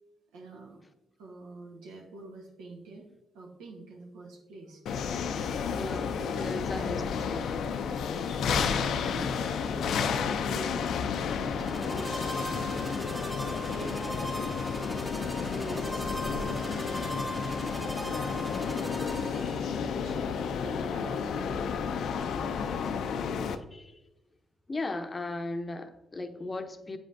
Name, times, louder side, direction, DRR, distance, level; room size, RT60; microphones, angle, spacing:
voice 1, 0.3-0.8 1.2-3.1 3.3-5.0 5.6-7.3 9.0-14.7 15.6-16.7 17.8-18.6 19.2-23.1, right 2 dB, 80° right, 0 dB, 1.2 m, -46 dB
sound 1, 4.9-23.6, left 6 dB, 70° left, 0.4 m, -31 dB
voice 2, 5.7-7.0 7.3-7.4 8.5-8.9 15.5-15.9 23.7-24.0 24.7-27.0, left 2 dB, 30° left, 8 dB, 0.7 m, -37 dB
sound 2, 11.4-19.9, equal, 10° right, 1.0 m, -38 dB
8.0 x 5.1 x 2.5 m, 0.92 s
hypercardioid pair, 45°, 0 cm